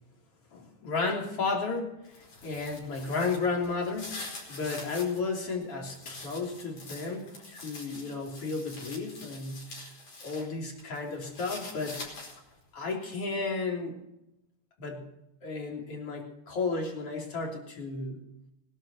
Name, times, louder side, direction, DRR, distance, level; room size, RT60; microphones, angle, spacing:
voice 1, 0.5-9.8 10.2-12.1 12.7-14.0 14.8-15.1 15.4-18.2, left 4 dB, 50° left, 0 dB, 4.1 m, -33 dB
sound 1, 2.0-5.2 5.6-10.5 10.8-12.6, left 2 dB, 70° left, 6.3 m, -45 dB
21.5 x 12.0 x 4.4 m, 0.84 s
omnidirectional pair, 3.5 m